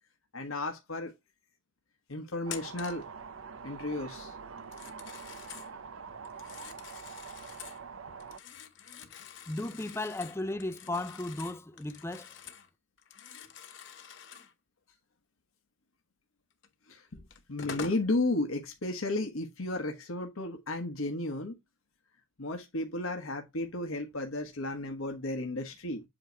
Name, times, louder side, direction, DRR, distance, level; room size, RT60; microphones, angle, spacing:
voice 1, 0.3-1.1 2.1-3.0 3.6-4.3 16.9-17.2 17.5-21.5 22.4-26.0, left 2 dB, 90° left, 1.3 m, -33 dB
sound 1, 2.4-8.4, right 5 dB, 80° right, 0.6 m, -45 dB
Telephone, 2.5-3.1 4.6-5.7 6.3-7.8 8.2-12.7 13.0-14.5 16.6-16.7 17.3-18.1, left 7 dB, 60° left, 0.9 m, -46 dB
voice 2, 9.5-12.3, left 2 dB, 10° left, 0.4 m, -35 dB
7.8 x 3.0 x 4.6 m
head